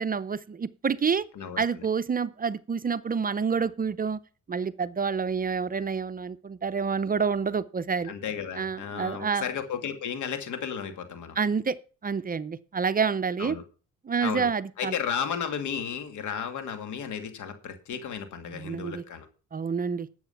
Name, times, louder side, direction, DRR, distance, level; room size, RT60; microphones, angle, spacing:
voice 1, 0.0-1.3 1.6-4.2 4.5-8.1 8.6-9.4 11.4-11.8 12.0-13.6 14.0-14.9 18.5-19.0 19.5-20.1, right 6 dB, 30° right, 0.6 m, -28 dB
voice 2, 8.1-11.4 13.4-13.6 14.2-14.5 14.8-19.3, left 7 dB, 75° left, 2.3 m, -33 dB
11.5 x 7.8 x 5.7 m
cardioid pair, 90°, 30 cm